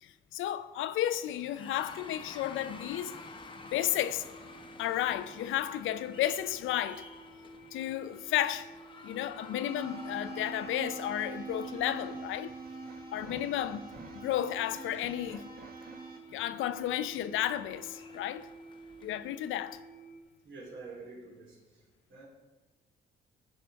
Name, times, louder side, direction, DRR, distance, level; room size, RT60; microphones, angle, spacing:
voice 1, 0.0-3.1 3.7-4.3 4.8-7.1 7.7-8.7 9.0-12.5 13.1-13.9 14.1-15.4 16.3-18.5 19.0-19.8, left 12 dB, 85° left, 0.5 m, -33 dB
sound 1, 1.1-19.8, left 3 dB, 25° left, 0.9 m, -53 dB
sound 2, 2.5-20.2, right 1 dB, 5° right, 1.7 m, -52 dB
sound 3, 9.7-16.2, right 3 dB, 50° right, 1.4 m, -44 dB
voice 2, 15.8-16.2 20.4-21.8 22.1-22.3, right 3 dB, 75° right, 3.1 m, -48 dB
14.5 x 5.0 x 4.5 m
cardioid pair, 90°, 20 cm